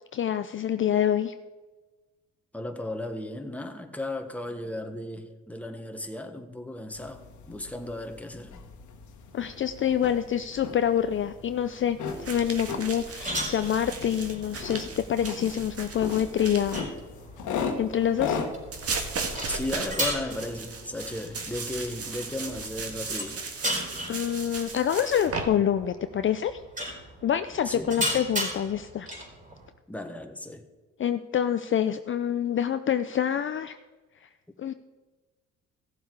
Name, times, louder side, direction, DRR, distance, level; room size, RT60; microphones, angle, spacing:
voice 1, 0.1-1.3 9.3-16.8 17.5-18.4 24.1-26.6 27.2-29.1 31.0-33.8 34.2-34.3 34.6-34.7, left 9 dB, 40° left, 10 dB, 0.5 m, -26 dB
voice 2, 2.5-8.6 19.5-23.4 27.7-28.0 29.9-30.7, left 1 dB, 5° left, 5 dB, 1.3 m, -35 dB
sound 1, 6.9-23.4, left 5 dB, 75° left, 1.5 m, -39 dB
sound 2, 11.9-29.7, equal, 25° right, 4.3 m, -37 dB
sound 3, 12.1-16.8 18.7-25.4, right 4 dB, 50° right, 1.8 m, -36 dB
15.5 x 7.2 x 4.7 m, 1.3 s
cardioid pair, 90°, 30 cm